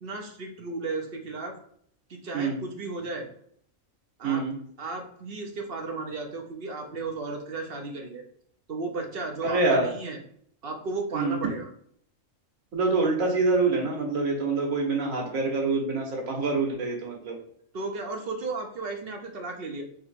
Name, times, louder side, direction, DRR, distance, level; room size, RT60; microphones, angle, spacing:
voice 1, 0.0-1.6 2.1-3.3 4.2-4.4 4.8-8.2 8.7-10.2 10.6-11.7 17.7-19.8, right 3 dB, 50° right, 3 dB, 0.9 m, -34 dB
voice 2, 4.2-4.5 9.4-9.9 11.1-11.4 12.7-17.3, right 3 dB, 85° right, 0 dB, 1.6 m, -26 dB
3.7 x 3.0 x 4.3 m, 0.65 s
omnidirectional pair, 1.4 m